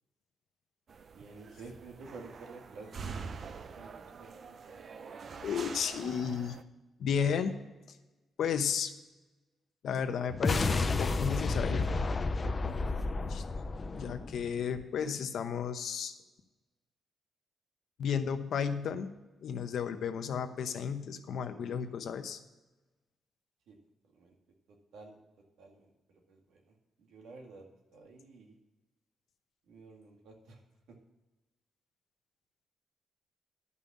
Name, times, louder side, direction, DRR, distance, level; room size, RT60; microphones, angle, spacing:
sound 1, 0.9-6.6, right 5 dB, 50° right, 0.6 m, -45 dB
voice 1, 1.1-3.0 3.7-4.9 12.7-12.9 23.7-23.8 24.1-24.3 24.9-25.2 25.6-26.6 27.0-27.7 27.9-28.5 29.7-30.6, right 3 dB, 85° right, 2 dB, 2.0 m, -51 dB
voice 2, 5.1-6.6 7.0-7.5 7.9-8.0 8.4-8.9 9.8-11.9 13.2-13.4 13.9-16.2 18.0-19.1 19.4-22.4, left 7 dB, 70° left, 8 dB, 0.9 m, -33 dB
sound 2, 10.3-14.8, left 3 dB, 30° left, 0.5 m, -31 dB
11.5 x 5.5 x 7.2 m, 1.1 s
cardioid pair, 120°, 0 cm